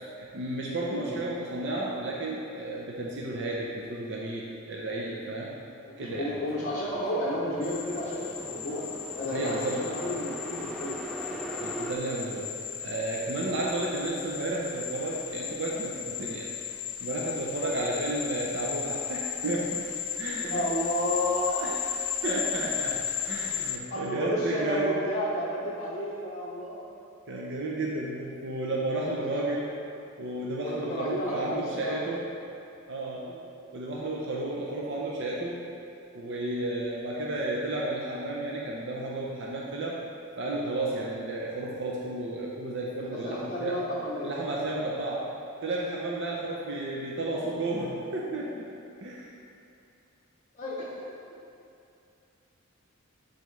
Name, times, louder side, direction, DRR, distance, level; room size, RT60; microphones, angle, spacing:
voice 1, 0.2-5.5 6.0-6.3 9.3-9.8 11.6-12.5 12.8-16.5 17.0-19.9 20.2-20.7 21.4-21.7 22.2-24.9 27.3-29.7 30.2-32.2 32.9-33.3 33.7-35.6 36.1-40.0 40.4-43.8 44.2-45.2 45.6-48.7 49.0-49.3, right 2 dB, 55° right, -3 dB, 0.7 m, -32 dB
voice 2, 5.8-8.8 9.1-11.0 13.4-13.6 17.6-17.8 20.4-21.6 23.9-26.8 29.3-29.4 30.6-32.0 33.3-33.4 43.2-44.3 47.0-47.1 48.3-48.4 50.5-50.9, left 1 dB, 35° left, -6 dB, 0.8 m, -32 dB
sound 1, 6.0-11.9, right 1 dB, ahead, 0.4 m, -40 dB
sound 2, 7.6-23.8, left 9 dB, 80° left, 0.5 m, -35 dB
10.5 x 4.2 x 3.2 m, 2.6 s
head